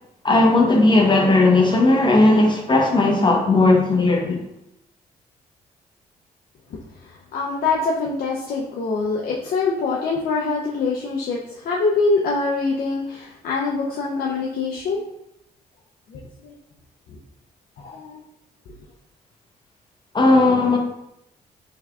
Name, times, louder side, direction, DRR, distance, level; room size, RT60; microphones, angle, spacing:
voice 1, 0.2-4.4 20.1-20.8, left 2 dB, 30° left, 0.9 m, -16 dB
voice 2, 7.3-11.4 11.6-15.0 16.1-16.5 17.8-18.2, left 4 dB, 70° left, 0.5 m, -24 dB
3.5 x 3.3 x 2.3 m
cardioid pair, 65°, 16 cm